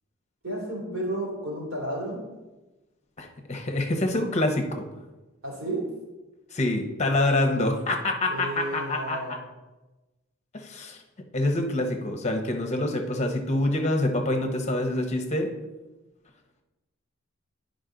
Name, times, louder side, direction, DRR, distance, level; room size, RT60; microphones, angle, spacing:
voice 1, 0.4-2.3 5.4-5.9 8.3-9.3, right 1 dB, 85° right, -3 dB, 2.8 m, -32 dB
voice 2, 3.2-4.9 6.5-9.4 10.5-11.0 11.3-15.5, left 1 dB, 35° left, 4 dB, 0.9 m, -26 dB
9.7 x 5.2 x 3.8 m, 1.1 s
head